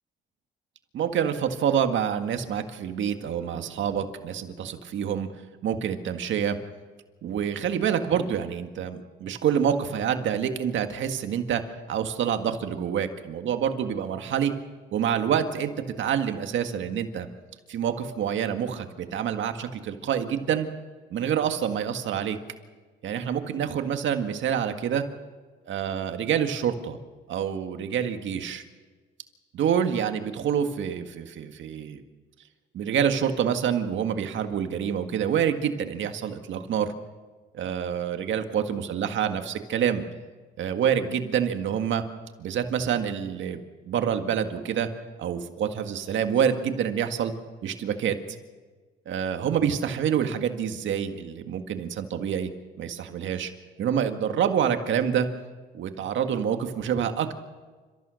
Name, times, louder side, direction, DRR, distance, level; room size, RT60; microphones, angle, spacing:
voice 1, 0.9-5.3 5.6-6.6 7.2-11.6 11.9-14.5 14.9-15.7 16.0-17.3 17.7-20.7 21.1-22.4 23.0-25.1 25.7-27.0 27.3-28.6 29.5-32.0 32.7-36.9 37.5-40.0 40.6-42.0 42.4-44.9 45.2-47.3 47.6-48.2 49.1-52.5 52.8-53.5 53.8-55.3 55.7-57.3, right 8 dB, 70° right, 7 dB, 1.9 m, -27 dB
30.0 x 14.5 x 6.4 m, 1.4 s
cardioid pair, 90°, 20 cm